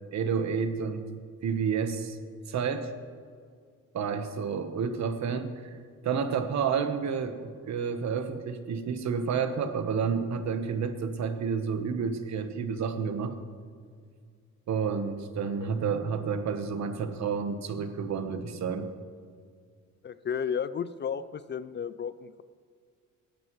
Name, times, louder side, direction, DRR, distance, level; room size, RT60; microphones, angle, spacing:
voice 1, 0.1-1.1 1.4-2.2 2.5-2.9 3.9-5.5 6.0-13.3 14.7-18.9, right 6 dB, 65° right, 9 dB, 1.2 m, -30 dB
voice 2, 20.0-22.4, left 7 dB, 35° left, 15 dB, 0.5 m, -33 dB
18.0 x 12.0 x 3.2 m, 2.1 s
cardioid pair, 90°, 30 cm